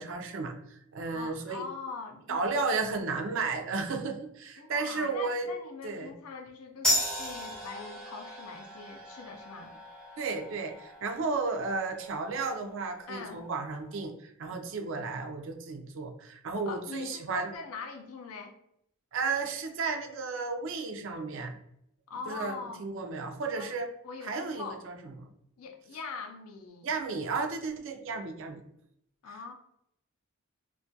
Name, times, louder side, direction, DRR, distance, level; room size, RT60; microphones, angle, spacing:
voice 1, 0.0-1.6 2.3-5.5 5.8-6.1 10.2-17.5 19.1-21.6 22.3-23.9 24.2-24.9 26.8-28.6, right 4 dB, 60° right, 5 dB, 0.4 m, -33 dB
voice 2, 1.1-2.5 4.6-9.7 13.1-13.4 16.7-18.6 22.1-22.8 23.6-23.8 24.0-24.9 25.6-26.9 29.2-29.5, left 4 dB, 80° left, 4 dB, 0.4 m, -42 dB
sound 1, 6.8-13.9, equal, 5° left, 0.5 m, -36 dB
2.2 x 2.2 x 2.6 m, 0.74 s
head